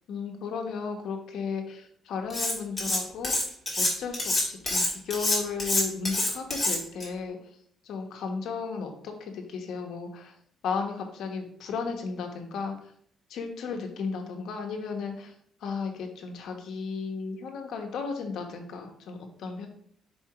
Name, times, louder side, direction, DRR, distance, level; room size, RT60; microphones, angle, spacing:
voice 1, 0.1-3.3 3.8-7.4 7.8-10.3 10.6-12.9 13.3-15.3 15.6-19.7, left 5 dB, 75° left, 3 dB, 1.2 m, -34 dB
Cutlery silverware, 2.3-3.0 3.2-7.0, left 2 dB, 15° left, 2.6 m, -26 dB
4.9 x 4.5 x 4.9 m, 0.65 s
cardioid pair, 135°, 0 cm